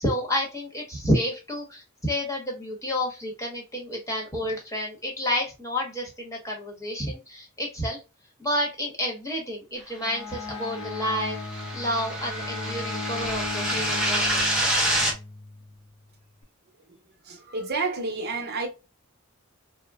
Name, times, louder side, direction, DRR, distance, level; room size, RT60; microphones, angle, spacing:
voice 1, 0.0-8.0 8.4-11.4 11.7-14.7, equal, 15° left, 1.0 m, -30 dB
Bowed string instrument, 10.0-15.8, left 3 dB, 70° left, 0.7 m, -36 dB
sound 1, 10.7-15.1, right 1 dB, 5° right, 0.8 m, -27 dB
voice 2, 17.2-18.7, right 3 dB, 45° right, 0.9 m, -30 dB
3.6 x 2.1 x 2.3 m
head